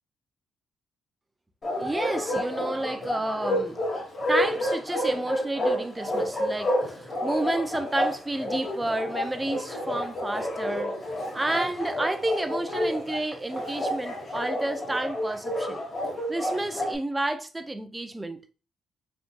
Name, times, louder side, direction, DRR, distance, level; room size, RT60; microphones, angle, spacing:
Bark, 1.6-17.0, left 1 dB, 40° left, 1.6 m, -30 dB
voice 1, 1.8-3.8 4.3-11.0 11.3-15.8 16.3-18.5, right 2 dB, 15° right, 0.5 m, -30 dB
3.9 x 3.4 x 2.5 m
cardioid pair, 90°, 0 cm